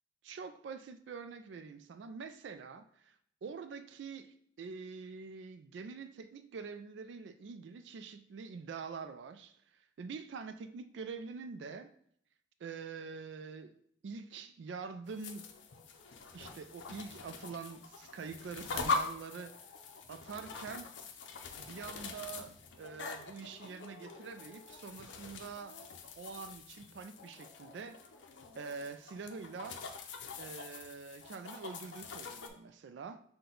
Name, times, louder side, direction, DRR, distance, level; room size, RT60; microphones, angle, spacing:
voice 1, 0.2-3.2 3.4-11.9 12.6-15.5 16.3-19.7 20.1-20.9 21.6-25.8 26.2-28.0 28.6-29.8 30.4-33.2, right 5 dB, 70° right, 0.3 m, -45 dB
sound 1, 15.1-32.5, left 4 dB, 75° left, 0.5 m, -43 dB
5.8 x 2.2 x 3.8 m
head